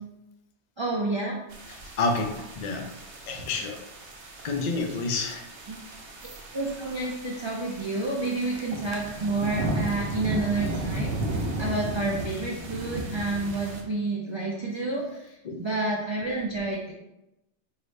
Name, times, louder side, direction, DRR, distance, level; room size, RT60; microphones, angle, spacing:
voice 1, 0.8-1.4 5.7-5.8 6.5-16.9, right 2 dB, 40° right, -3 dB, 0.4 m, -29 dB
sound 1, 1.5-13.8, right 1 dB, 80° right, 1.0 m, -35 dB
voice 2, 1.7-2.9 3.2-3.8 4.4-5.5 15.4-15.6, left 3 dB, 50° left, 3 dB, 0.6 m, -29 dB
4.7 x 2.6 x 3.2 m, 0.91 s
omnidirectional pair, 1.2 m